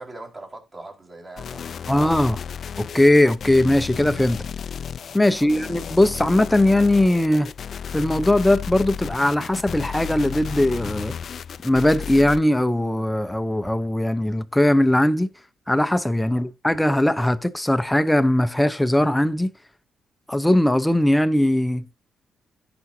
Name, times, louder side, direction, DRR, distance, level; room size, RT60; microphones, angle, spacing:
voice 1, 0.0-2.4 5.3-5.7 16.3-16.5, right 2 dB, 30° right, 4.5 m, -42 dB
sound 1, 1.4-12.4, left 7 dB, 50° left, 0.5 m, -33 dB
voice 2, 1.9-2.4 2.8-4.5 5.1-7.5 7.9-11.1 11.6-15.3 15.7-19.5 20.3-21.8, left 1 dB, 5° left, 0.7 m, -19 dB
16.0 x 6.1 x 2.8 m
cardioid pair, 135°, 0 cm